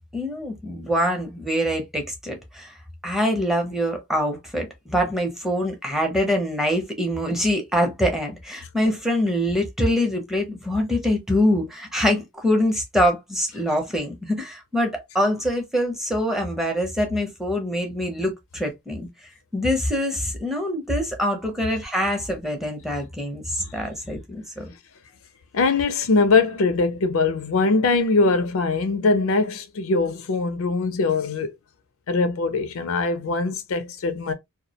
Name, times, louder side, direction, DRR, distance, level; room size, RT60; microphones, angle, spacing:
voice 1, 0.1-2.7 3.0-19.1 19.5-24.6, equal, ahead, 0.6 m, -24 dB
voice 2, 25.5-31.5 32.1-34.3, left 3 dB, 65° left, 0.5 m, -22 dB
2.2 x 2.0 x 2.7 m
head